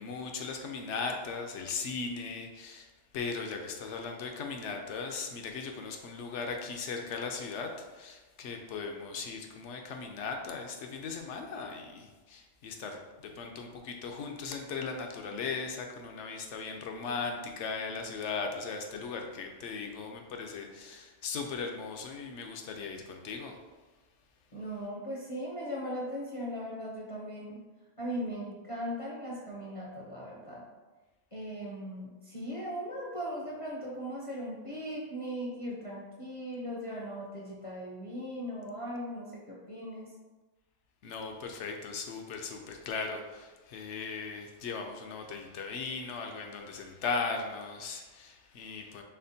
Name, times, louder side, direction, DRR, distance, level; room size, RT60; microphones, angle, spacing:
voice 1, 0.0-2.9 3.1-23.6 41.0-49.0, left 4 dB, 70° left, 3 dB, 0.8 m, -38 dB
voice 2, 24.5-27.6 28.0-30.7 31.3-40.1, equal, 40° left, -5 dB, 0.5 m, -38 dB
4.2 x 3.6 x 2.7 m, 1.2 s
omnidirectional pair, 1.3 m